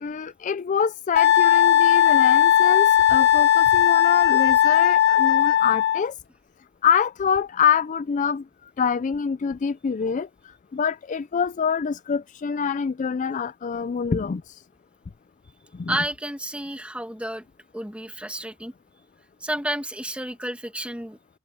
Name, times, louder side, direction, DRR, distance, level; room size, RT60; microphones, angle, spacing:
voice 1, 0.0-6.1 6.8-14.6 15.7-16.0, left 6 dB, 35° left, 0.3 m, -26 dB
Wind instrument woodwind instrument, 1.2-6.0, left 10 dB, 55° left, 1.8 m, -17 dB
voice 2, 15.9-17.4 17.7-18.7 19.4-21.2, right 1 dB, 5° right, 1.6 m, -31 dB
head